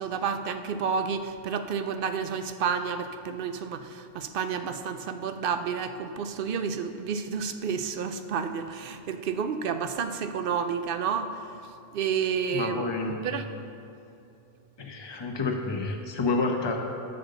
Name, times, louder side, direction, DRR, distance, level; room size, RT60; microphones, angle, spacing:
voice 1, 0.0-11.3 11.9-12.8 13.2-13.5, right 6 dB, 60° right, 9 dB, 0.7 m, -30 dB
voice 2, 12.5-13.3 14.8-16.8, left 3 dB, 25° left, 1 dB, 0.8 m, -29 dB
7.6 x 6.8 x 6.7 m, 2.7 s
omnidirectional pair, 1.1 m